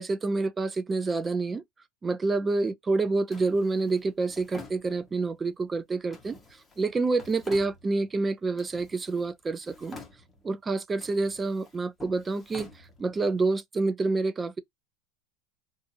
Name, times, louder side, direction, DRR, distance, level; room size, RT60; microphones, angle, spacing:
voice 1, 0.0-1.6 2.0-6.4 6.8-10.0 10.4-12.7 13.0-14.6, right 3 dB, 20° right, 0.4 m, -28 dB
Drawer open or close, 3.3-5.4 6.1-8.2 8.5-9.3 9.6-10.6 10.9-13.4, left 3 dB, 15° left, 1.0 m, -49 dB
2.6 x 2.5 x 2.6 m
hypercardioid pair, 110°, 0 cm